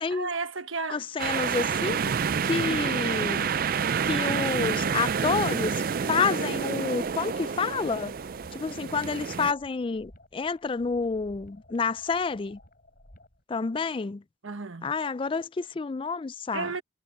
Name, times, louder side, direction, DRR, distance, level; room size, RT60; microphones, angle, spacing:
voice 1, 0.1-1.0 2.4-2.8 14.4-14.9 16.5-16.8, right 4 dB, 85° right, 1.3 m, -34 dB
voice 2, 0.9-2.1 2.4-3.5 4.0-8.1 8.5-12.6 13.5-14.2 14.8-16.7, left 4 dB, 25° left, 0.3 m, -29 dB
sound 1, 1.2-9.5, right 6 dB, 45° right, 0.4 m, -28 dB
sound 2, 7.8-13.4, left 1 dB, 45° left, 6.0 m, -55 dB
head